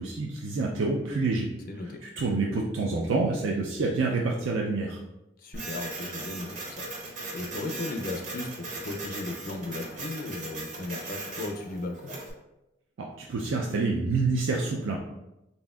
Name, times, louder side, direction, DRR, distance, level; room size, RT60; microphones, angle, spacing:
voice 1, 0.0-1.5 2.2-5.0 13.2-15.0, right 3 dB, 80° right, -2 dB, 0.4 m, -27 dB
voice 2, 1.7-2.0 5.4-12.1, left 2 dB, 50° left, 4 dB, 0.4 m, -36 dB
Printer, 5.5-12.3, right 2 dB, 40° right, 1.1 m, -38 dB
4.1 x 3.5 x 2.3 m, 0.94 s
head